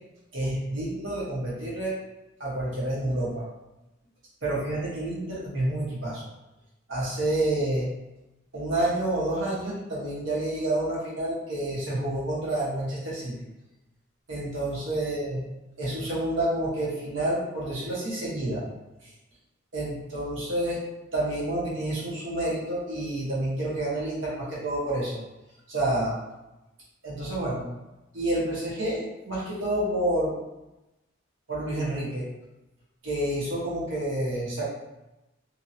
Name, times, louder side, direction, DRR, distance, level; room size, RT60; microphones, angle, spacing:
voice 1, 0.3-1.9 2.4-3.4 4.4-6.3 6.9-7.9 8.5-13.3 14.3-15.4 15.8-18.6 19.7-20.8 21.1-25.2 25.7-26.2 27.0-27.6 28.1-30.3 31.5-32.2 33.0-34.6, right 1 dB, 75° right, -7 dB, 1.1 m, -29 dB
2.8 x 2.6 x 2.7 m, 0.98 s
head